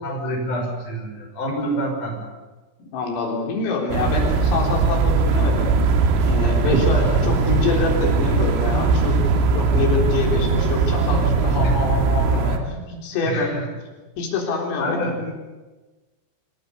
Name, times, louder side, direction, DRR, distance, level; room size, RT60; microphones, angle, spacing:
voice 1, 0.0-2.2 6.6-6.8 11.9-12.0 12.7-12.8 13.2-13.6 14.8-15.1, equal, 40° left, 0 dB, 7.2 m, -27 dB
voice 2, 2.8-5.7 6.2-9.2 9.5-13.6 14.2-15.3, left 4 dB, 90° left, 0 dB, 6.7 m, -26 dB
sound 1, 3.9-12.6, right 4 dB, 80° right, 4.5 m, -19 dB
26.5 x 18.0 x 8.4 m, 1.2 s
omnidirectional pair, 5.8 m